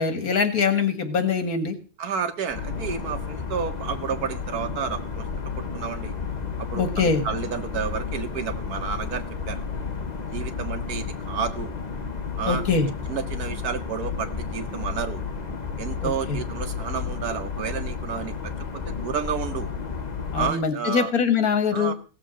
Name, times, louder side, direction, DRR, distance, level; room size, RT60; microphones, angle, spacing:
voice 1, 0.0-1.8 6.7-7.2 12.5-12.9 16.0-16.1 20.3-21.9, left 5 dB, 75° left, 8 dB, 2.3 m, -23 dB
voice 2, 2.0-5.3 5.7-6.1 6.6-9.6 10.3-11.8 12.4-12.8 13.1-15.2 15.8-18.3 19.0-19.7 20.4-21.1 21.7-21.9, right 7 dB, 85° right, 9 dB, 1.8 m, -31 dB
sound 1, 2.5-20.5, left 5 dB, 35° left, 1.0 m, -32 dB
16.5 x 7.4 x 6.3 m, 0.37 s
omnidirectional pair, 1.6 m